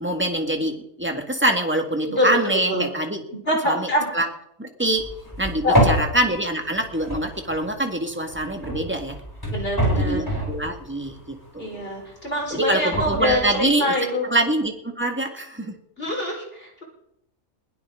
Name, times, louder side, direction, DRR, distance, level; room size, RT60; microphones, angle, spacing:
voice 1, 0.0-3.2 3.7-4.3 4.6-5.0 5.4-9.2 10.0-11.9 12.5-13.9 14.2-15.7, right 1 dB, 10° right, 3 dB, 2.0 m, -25 dB
voice 2, 2.1-2.9 3.3-4.0 5.6-6.0 9.5-10.4 11.6-14.3 16.0-16.8, left 1 dB, 45° left, -1 dB, 4.9 m, -25 dB
sound 1, 5.0-7.9 8.3-11.8 12.2-13.7, equal, 15° left, 7.5 m, -26 dB
21.5 x 17.0 x 3.9 m, 0.76 s
omnidirectional pair, 1.4 m